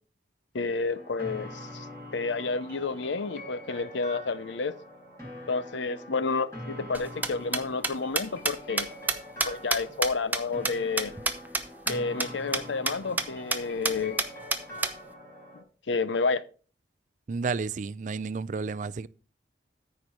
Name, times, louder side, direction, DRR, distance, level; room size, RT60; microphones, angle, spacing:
voice 1, 0.5-1.9 2.1-4.8 5.5-8.9 9.5-11.1 11.9-14.2 15.9-16.4, left 4 dB, 85° left, 0.7 m, -30 dB
sound 1, 0.9-15.6, left 1 dB, 15° left, 4.3 m, -44 dB
sound 2, 6.9-11.6 11.9-12.0 12.2-12.3 12.5-12.6 12.9-13.2 13.5-13.6 13.8-14.9, right 3 dB, 10° right, 0.7 m, -27 dB
voice 2, 17.3-19.1, right 4 dB, 45° right, 0.4 m, -31 dB
13.5 x 4.6 x 5.1 m
head